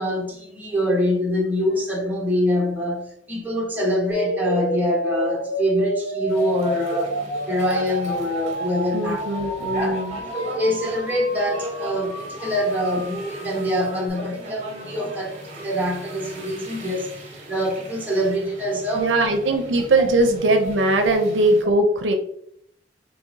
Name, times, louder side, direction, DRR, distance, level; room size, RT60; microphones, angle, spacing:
voice 1, 0.0-7.2 7.5-10.0 10.3-19.1 20.0-20.1, equal, 10° right, 1.1 m, -25 dB
sound 1, 4.1-14.1, equal, 55° left, 0.9 m, -31 dB
sound 2, 6.3-21.6, equal, 40° right, 0.9 m, -38 dB
voice 2, 8.9-10.2 19.0-22.1, right 2 dB, 75° right, 0.5 m, -20 dB
4.6 x 3.1 x 2.7 m
head